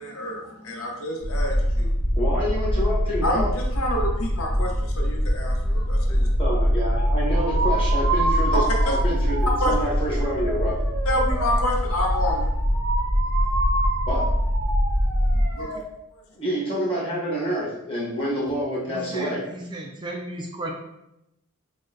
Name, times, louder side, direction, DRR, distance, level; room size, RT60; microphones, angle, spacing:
voice 1, 0.0-1.9 3.2-6.3 8.7-8.9 9.6-9.7 11.0-12.5 15.3-15.8, left 1 dB, 65° left, 0 dB, 0.7 m, -28 dB
sound 1, 1.2-15.5, equal, 85° left, 1.1 m, -23 dB
voice 2, 2.1-3.5 6.4-10.8 14.1-14.3 16.4-19.4, equal, 25° left, -6 dB, 1.2 m, -28 dB
sound 2, 6.9-15.8, right 2 dB, 80° right, 0.8 m, -30 dB
voice 3, 18.9-20.7, right 1 dB, 20° right, 0 dB, 0.3 m, -34 dB
6.2 x 2.2 x 2.5 m, 0.88 s
head